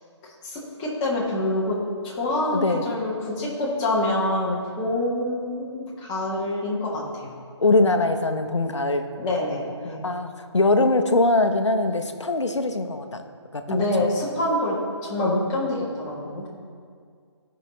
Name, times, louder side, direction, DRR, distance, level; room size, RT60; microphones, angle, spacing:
voice 1, 0.4-1.8 2.0-7.3 9.2-10.0 13.7-16.5, left 1 dB, 15° left, -5 dB, 1.4 m, -26 dB
voice 2, 2.5-2.8 7.6-9.1 10.0-13.2 13.5-14.1, left 2 dB, 75° left, 7 dB, 0.8 m, -22 dB
14.0 x 5.7 x 3.2 m, 2.1 s
figure-of-eight pair, 150°, 15 cm